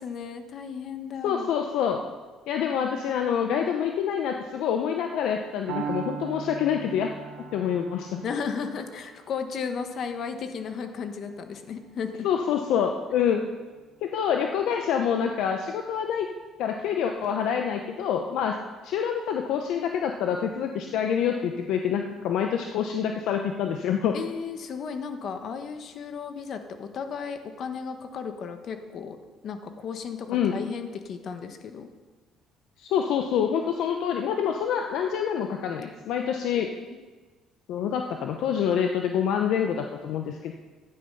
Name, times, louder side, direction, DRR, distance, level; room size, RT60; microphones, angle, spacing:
voice 1, 0.0-1.5 8.2-12.3 24.1-29.2 29.4-31.9, left 6 dB, 60° left, 7 dB, 1.4 m, -34 dB
voice 2, 1.2-2.0 2.5-7.1 7.5-8.2 12.2-13.4 14.0-16.3 16.6-18.6 18.8-24.2 30.3-30.6 32.8-36.7 37.7-40.5, left 8 dB, 75° left, 4 dB, 0.8 m, -26 dB
Piano, 5.7-13.6, right 7 dB, 90° right, 0.9 m, -41 dB
12.5 x 9.6 x 5.5 m, 1.3 s
cardioid pair, 90°, 0 cm